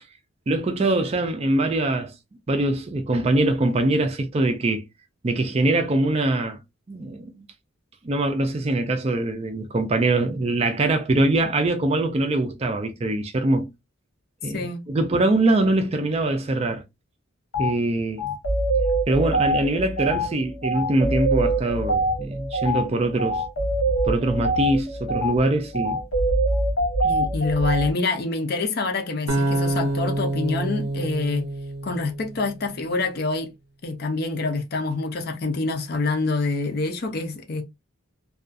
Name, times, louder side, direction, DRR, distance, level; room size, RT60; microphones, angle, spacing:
voice 1, 0.5-2.1 2.5-4.8 5.2-6.6 6.9-7.4 8.0-13.7 14.4-16.8 17.6-18.2 19.1-23.4 24.0-26.0, right 2 dB, 30° right, 0.3 m, -23 dB
voice 2, 14.4-14.8 27.0-31.4 31.8-33.5 33.8-37.6, left 3 dB, 50° left, 0.5 m, -26 dB
sound 1, 17.5-17.7 18.2-27.9, right 1 dB, 80° left, 0.8 m, -24 dB
sound 2, 29.3-32.4, right 2 dB, 80° right, 0.5 m, -26 dB
2.3 x 2.3 x 2.5 m
head